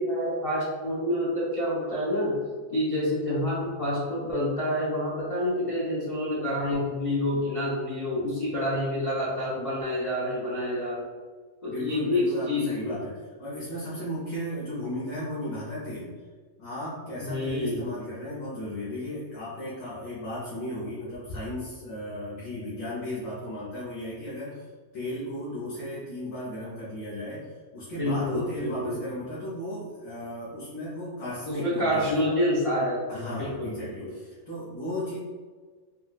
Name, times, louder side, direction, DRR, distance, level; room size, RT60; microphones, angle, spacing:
voice 1, 0.0-2.3 2.7-11.1 11.6-13.0 17.2-18.0 28.0-29.0 31.5-34.1, left 1 dB, 40° left, -9 dB, 0.5 m, -28 dB
voice 2, 11.6-16.2 16.6-32.1 33.1-35.2, left 1 dB, 70° left, -8 dB, 1.3 m, -35 dB
4.2 x 2.2 x 2.3 m, 1.5 s
omnidirectional pair, 1.6 m